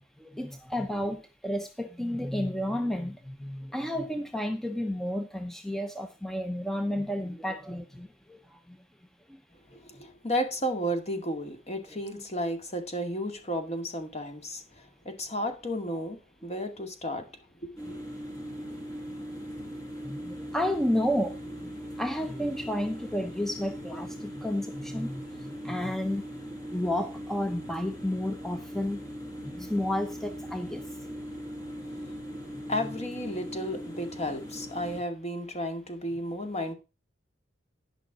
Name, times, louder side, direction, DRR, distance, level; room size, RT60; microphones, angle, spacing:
voice 1, 0.2-8.4 8.7-8.8 20.0-21.7 22.0-26.3 26.7-29.0 29.4-30.8, left 1 dB, ahead, 0.7 m, -31 dB
voice 2, 9.7-17.3 17.6-18.0 31.9-32.0 32.7-36.7, equal, 35° left, 2.1 m, -33 dB
sound 1, 17.8-35.0, equal, 20° left, 4.6 m, -40 dB
11.5 x 5.8 x 6.0 m
head